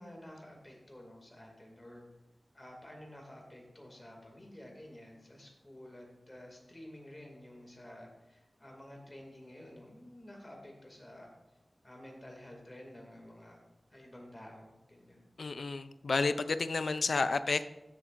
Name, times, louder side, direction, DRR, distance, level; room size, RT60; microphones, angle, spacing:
voice 1, 0.0-2.1 2.5-11.3 11.8-13.6 13.9-15.2, left 1 dB, 25° left, 1 dB, 2.3 m, -51 dB
voice 2, 15.4-17.7, left 3 dB, 80° left, 12 dB, 0.4 m, -31 dB
14.5 x 7.0 x 2.5 m, 0.98 s
wide cardioid pair, 90°, 0 cm